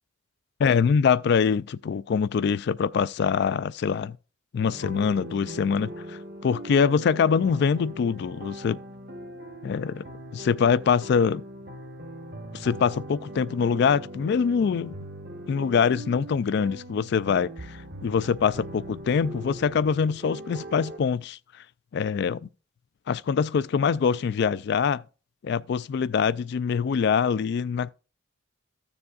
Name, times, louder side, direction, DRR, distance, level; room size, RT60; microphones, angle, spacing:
voice 1, 0.6-4.2 4.5-8.8 9.6-10.0 10.3-11.4 12.5-15.0 15.5-21.4 21.9-22.4 23.1-25.0 25.4-27.9, left 6 dB, 55° left, 0.3 m, -24 dB
sound 1, 4.6-21.0, right 1 dB, 50° right, 0.9 m, -40 dB
14.0 x 7.0 x 2.4 m
head